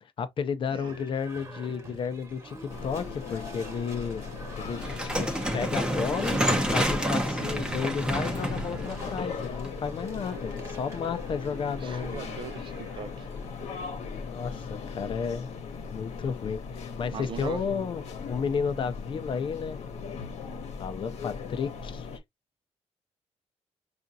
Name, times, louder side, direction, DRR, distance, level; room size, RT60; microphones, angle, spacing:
voice 1, 0.0-4.2 4.6-4.8 5.2-12.2 14.3-15.5 15.9-18.0 18.3-19.8 20.8-22.1, left 6 dB, 45° left, 0.6 m, -32 dB
Livestock farm animals working animals / Bell, 0.7-16.6, right 1 dB, 25° right, 1.2 m, -46 dB
sound 1, 2.7-22.2, left 5 dB, 70° left, 1.0 m, -38 dB
sound 2, 4.8-9.9, right 1 dB, 10° right, 0.7 m, -29 dB
voice 2, 11.8-13.3 17.1-17.6, right 7 dB, 45° right, 0.4 m, -40 dB
5.0 x 2.5 x 2.7 m
cardioid pair, 145°, 12 cm